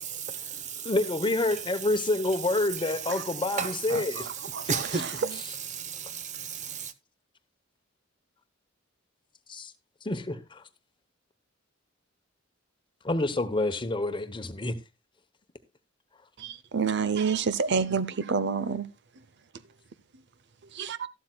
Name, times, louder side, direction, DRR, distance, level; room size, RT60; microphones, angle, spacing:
voice 1, 0.0-0.9 3.6-3.7 4.6-5.2 5.7-6.9, right 5 dB, 40° right, 0.8 m, -33 dB
voice 2, 0.8-4.3 9.5-9.7 10.0-10.6 13.0-14.7, left 2 dB, 25° left, 0.9 m, -28 dB
voice 3, 3.6-5.4 16.4-18.9 20.7-21.1, right 5 dB, 60° right, 0.6 m, -29 dB
13.0 x 12.0 x 2.3 m
head